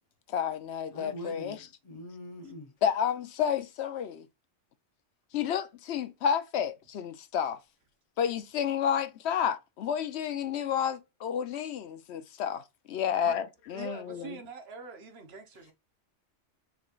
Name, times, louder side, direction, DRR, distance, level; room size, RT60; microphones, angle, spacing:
voice 1, 0.3-1.6 2.8-4.3 5.3-7.6 8.2-12.6 12.9-14.4, left 8 dB, 70° left, 0.9 m, -30 dB
voice 2, 0.9-2.7, equal, 35° left, 1.0 m, -43 dB
voice 3, 13.7-15.7, right 5 dB, 65° right, 1.1 m, -44 dB
5.1 x 3.1 x 2.4 m
omnidirectional pair, 1.2 m